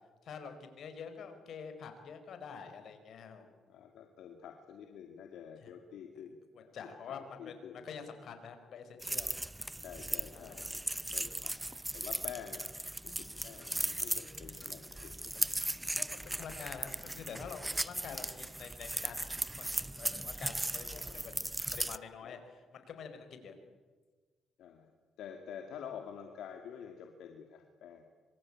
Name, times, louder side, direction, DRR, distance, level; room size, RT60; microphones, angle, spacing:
voice 1, 0.2-3.5 5.6-5.7 6.5-9.3 10.3-10.6 16.0-19.2 19.6-21.3 21.7-23.5, left 6 dB, 65° left, 8 dB, 4.9 m, -47 dB
voice 2, 3.7-6.7 7.1-7.8 9.8-10.7 11.1-11.5 11.9-12.6 13.0-15.5 21.0-21.4 22.2-22.4 24.6-24.9 25.2-28.0, left 8 dB, 80° left, 4 dB, 2.6 m, -48 dB
sound 1, 9.0-22.0, right 1 dB, 10° right, 0.8 m, -37 dB
26.0 x 24.0 x 8.9 m, 1.4 s
cardioid pair, 90°, 0 cm